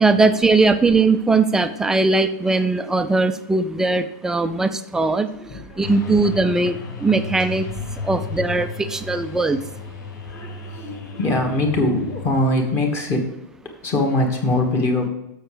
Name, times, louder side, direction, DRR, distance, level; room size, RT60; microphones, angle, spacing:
voice 1, 0.0-5.3 5.8-6.8 7.0-7.7 8.1-9.6, right 3 dB, 5° right, 9 dB, 0.4 m, -19 dB
voice 2, 5.3-6.2 7.7-8.3 8.8-9.1 10.3-13.4 13.6-15.1, left 2 dB, 25° left, 2 dB, 1.4 m, -23 dB
sound 1, 5.8-12.3, left 3 dB, 80° left, 1.5 m, -34 dB
6.7 x 6.5 x 4.9 m, 0.86 s
supercardioid pair, 155°, 10 cm